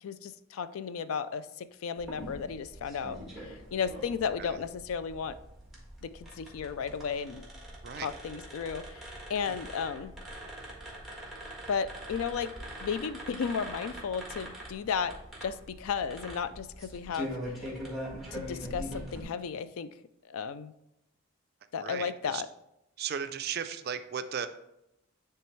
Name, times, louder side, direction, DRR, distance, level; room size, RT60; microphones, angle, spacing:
voice 1, 0.0-5.4 6.0-7.4 8.0-10.1 11.7-12.5 12.8-15.1 15.4-17.6 18.3-19.9 20.3-20.7 21.7-22.5, left 6 dB, 75° left, 14 dB, 0.4 m, -34 dB
sound 1, 2.0-19.2, equal, ahead, 1.5 m, -43 dB
voice 2, 21.8-22.4 23.0-24.5, right 7 dB, 45° right, 10 dB, 0.4 m, -36 dB
10.0 x 3.4 x 3.2 m, 0.86 s
head